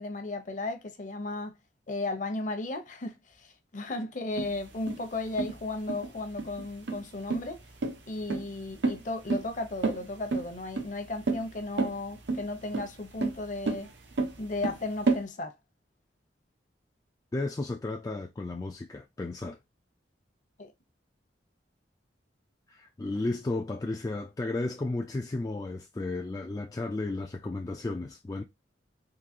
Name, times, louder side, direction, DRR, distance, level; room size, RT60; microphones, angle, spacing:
voice 1, 0.0-1.6 1.9-7.6 8.1-13.9 14.4-15.5 20.6-20.7, left 2 dB, 45° left, 0.7 m, -35 dB
sound 1, 4.4-15.2, right 3 dB, 85° right, 0.9 m, -31 dB
voice 2, 17.3-19.6 22.7-28.4, left 2 dB, 20° left, 0.3 m, -33 dB
3.9 x 2.7 x 2.7 m
head